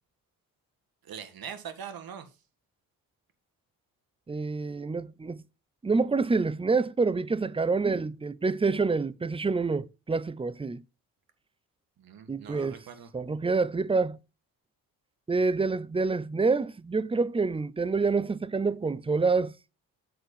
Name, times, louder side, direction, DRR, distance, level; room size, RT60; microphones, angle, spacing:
voice 1, 1.0-2.4 12.0-13.1, right 8 dB, 65° right, 1.9 m, -42 dB
voice 2, 4.3-5.4 5.8-10.8 12.3-12.8 13.1-14.2 15.3-19.5, right 4 dB, 15° right, 0.6 m, -27 dB
7.7 x 4.4 x 7.0 m
supercardioid pair, 65°, 39 cm